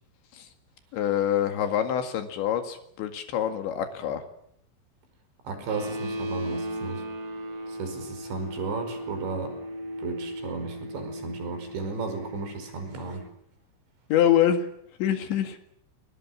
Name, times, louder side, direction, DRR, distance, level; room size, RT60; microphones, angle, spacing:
voice 1, 0.9-4.2 14.1-14.7 15.0-15.6, left 10 dB, 80° left, 7 dB, 4.3 m, -25 dB
voice 2, 5.5-7.0 7.7-9.5 10.0-13.2, right 4 dB, 75° right, 8 dB, 7.4 m, -34 dB
sound 1, 5.7-13.3, equal, 35° right, 4.1 m, -37 dB
29.5 x 26.5 x 7.4 m, 0.70 s
omnidirectional pair, 5.2 m